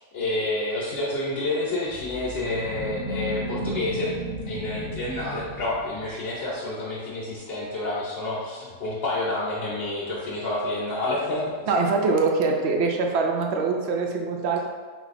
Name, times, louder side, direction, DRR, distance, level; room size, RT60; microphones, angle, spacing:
voice 1, 0.1-4.1 4.5-11.5, left 2 dB, 55° left, -7 dB, 0.9 m, -29 dB
sound 1, 1.9-6.3, right 1 dB, 25° right, 1.0 m, -34 dB
voice 2, 11.7-14.6, right 4 dB, 65° right, 2 dB, 0.7 m, -23 dB
4.1 x 2.8 x 4.1 m, 1.5 s
omnidirectional pair, 1.4 m